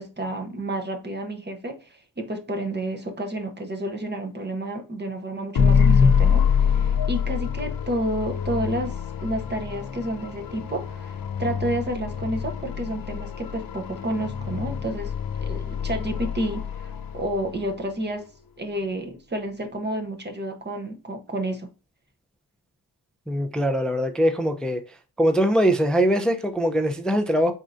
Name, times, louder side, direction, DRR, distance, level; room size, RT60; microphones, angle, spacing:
voice 1, 0.0-15.1 15.4-18.3 18.6-21.7, right 1 dB, 25° right, 0.8 m, -30 dB
sound 1, 5.5-17.7, left 6 dB, 55° left, 0.6 m, -25 dB
voice 2, 23.3-24.8 25.2-27.5, equal, ahead, 0.4 m, -22 dB
4.3 x 3.7 x 2.5 m
wide cardioid pair, 140°, 41 cm